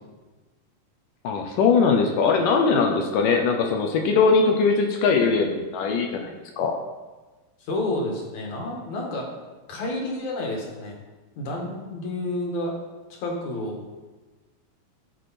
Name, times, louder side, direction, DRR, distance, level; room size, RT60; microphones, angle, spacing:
voice 1, 1.2-6.3 6.6-6.8, left 5 dB, 75° left, 3 dB, 2.0 m, -21 dB
voice 2, 7.6-9.3 9.7-11.0 11.4-12.7 13.2-13.8, left 1 dB, 50° left, -1 dB, 2.9 m, -30 dB
16.5 x 6.5 x 4.3 m, 1.2 s
omnidirectional pair, 4.7 m